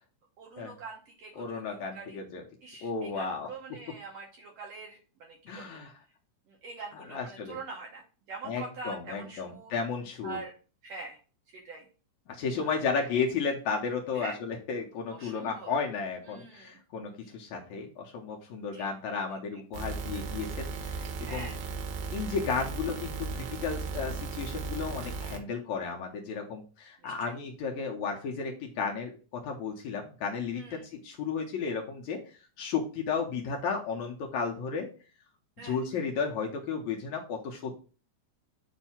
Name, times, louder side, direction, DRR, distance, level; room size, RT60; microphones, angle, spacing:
voice 1, 0.4-2.2 2.6-5.8 6.5-8.0 8.3-9.7 10.2-10.5 10.8-11.2 11.5-11.9 12.6-13.1 14.1-14.4 15.1-15.7 16.2-16.8 17.2-17.3 18.7-18.9 21.2-21.6 27.0-27.3 30.5-30.9 35.6-35.8, right 4 dB, 65° right, -1 dB, 1.7 m, -44 dB
voice 2, 1.4-2.4 2.8-3.5 5.5-5.9 7.0-7.6 8.4-10.4 12.3-21.5 22.1-34.9 35.6-37.8, left 5 dB, 75° left, 1 dB, 1.8 m, -33 dB
sound 1, 19.7-25.4, right 4 dB, 85° right, 2.7 m, -36 dB
7.3 x 2.7 x 5.6 m, 0.37 s
omnidirectional pair, 4.0 m